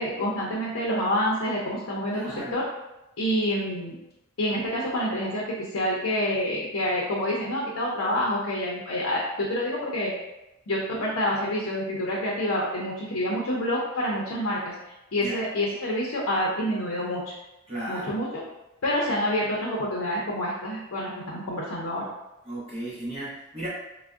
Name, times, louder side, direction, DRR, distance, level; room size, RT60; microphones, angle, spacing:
voice 1, 0.0-2.6 3.2-4.0 4.4-10.1 10.7-14.7 15.1-17.3 17.9-18.3 18.8-22.0, equal, 65° left, -4 dB, 0.5 m, -27 dB
voice 2, 2.1-2.6 15.2-15.4 17.7-18.2 22.4-23.7, right 1 dB, 30° right, -7 dB, 0.7 m, -35 dB
3.4 x 2.1 x 2.3 m, 0.93 s
head